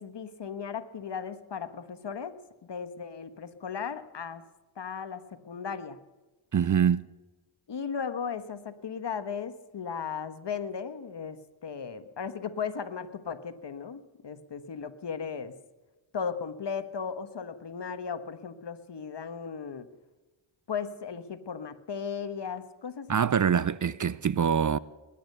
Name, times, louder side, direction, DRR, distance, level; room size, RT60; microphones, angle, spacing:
voice 1, 0.0-2.3 2.6-4.4 4.8-6.0 7.7-11.4 11.6-15.5 16.1-19.9 20.7-23.2, left 6 dB, 55° left, 1.3 m, -36 dB
voice 2, 6.5-7.1 23.1-24.8, right 7 dB, 40° right, 0.5 m, -24 dB
20.0 x 10.5 x 6.7 m
cardioid pair, 65°, 49 cm